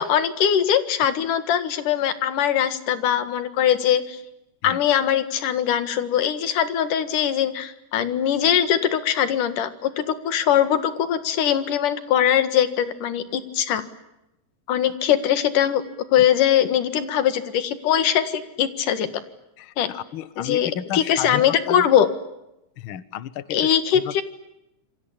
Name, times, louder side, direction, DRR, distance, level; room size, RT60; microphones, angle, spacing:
voice 1, 0.0-4.2 4.6-13.8 14.7-15.8 16.1-19.1 19.8-19.9 20.4-22.1 23.5-24.2, left 9 dB, 80° left, 11 dB, 3.3 m, -21 dB
voice 2, 19.6-21.9 22.8-24.2, left 10 dB, 60° left, 16 dB, 1.4 m, -33 dB
28.0 x 24.0 x 8.7 m, 0.89 s
omnidirectional pair, 3.7 m